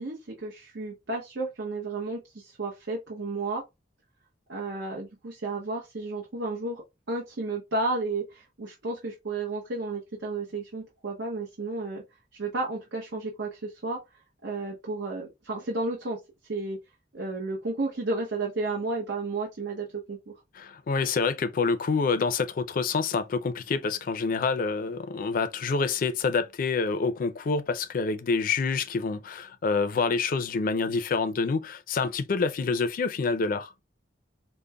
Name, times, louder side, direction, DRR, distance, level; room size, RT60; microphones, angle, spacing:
voice 1, 0.0-3.6 4.5-12.0 12.4-14.0 14.4-16.2 16.5-16.8 17.1-20.3, right 3 dB, 80° right, 0.8 m, -32 dB
voice 2, 20.6-33.7, left 4 dB, 50° left, 0.4 m, -27 dB
5.1 x 2.1 x 2.2 m
head